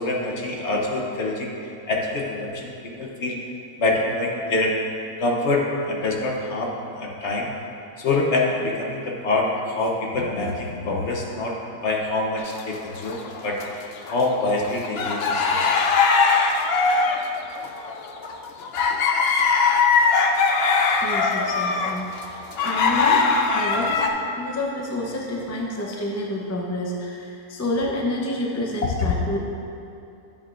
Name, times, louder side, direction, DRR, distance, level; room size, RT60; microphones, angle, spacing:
voice 1, 0.0-1.5 1.9-3.4 3.8-4.8 5.2-7.5 8.0-15.9, left 2 dB, 55° left, -1 dB, 1.0 m, -25 dB
sound 1, 12.4-13.7 14.1-24.1, left 4 dB, 75° left, 0.5 m, -21 dB
voice 2, 21.0-23.3 23.5-24.1 24.3-29.4, left 1 dB, 25° left, -2 dB, 0.3 m, -29 dB
10.5 x 7.3 x 2.5 m, 2.7 s
omnidirectional pair, 1.7 m